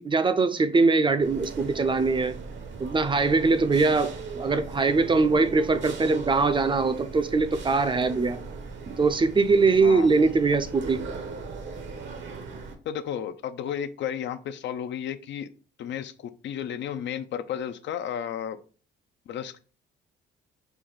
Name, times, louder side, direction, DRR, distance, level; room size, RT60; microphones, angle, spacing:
voice 1, 0.0-2.4 2.8-8.4 8.9-11.0, right 3 dB, 25° right, 0.4 m, -22 dB
sound 1, 1.2-12.7, right 4 dB, 70° right, 0.9 m, -38 dB
voice 2, 9.8-10.1 12.9-15.5 15.8-18.6 19.3-19.6, left 9 dB, 65° left, 0.5 m, -33 dB
4.6 x 2.6 x 3.8 m
cardioid pair, 90°, 20 cm